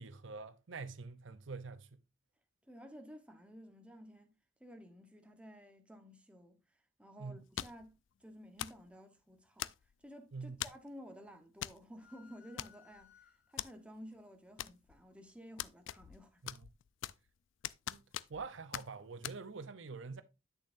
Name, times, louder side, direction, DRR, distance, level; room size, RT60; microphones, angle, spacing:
voice 1, 0.0-2.0 7.2-7.4 10.3-10.6 16.4-16.7 17.9-18.0 18.3-20.2, right 4 dB, 75° right, 0.7 m, -45 dB
voice 2, 2.7-4.3 4.6-6.6 7.0-9.7 10.0-16.4, equal, 5° right, 1.1 m, -53 dB
sound 1, 7.6-7.9 8.6-8.9 9.6-10.0 10.6-10.9 11.6-11.8 12.1-12.2 12.6-13.1 13.6-13.7 14.6-15.1 15.6-16.2 16.5-17.3 17.6-18.5 18.7-18.9 19.2-19.4, left 12 dB, 75° left, 0.4 m, -42 dB
sound 2, 12.0-13.8, left 8 dB, 50° left, 3.9 m, -63 dB
8.3 x 6.9 x 2.6 m
head